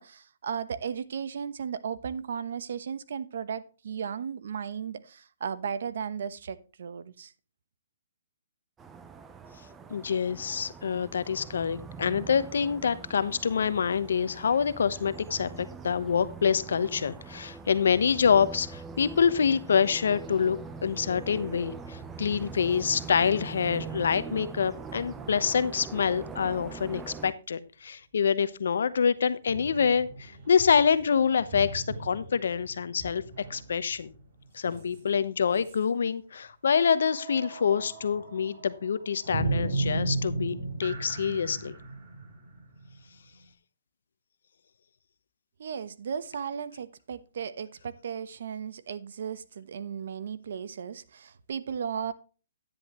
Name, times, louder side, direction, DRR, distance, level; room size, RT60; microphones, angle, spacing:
voice 1, 0.0-7.3 45.6-52.1, right 7 dB, 65° right, 13 dB, 1.0 m, -35 dB
sound 1, 8.8-27.3, right 5 dB, 10° right, 0.7 m, -43 dB
voice 2, 9.9-33.2 33.5-34.1 34.5-40.5 40.8-41.7, left 6 dB, 75° left, 15 dB, 0.9 m, -26 dB
sound 2, 29.5-35.3 35.5-35.8 36.8-43.4, right 2 dB, 35° right, 3.7 m, -36 dB
10.5 x 10.0 x 3.0 m, 0.34 s
hypercardioid pair, 160°, 0 cm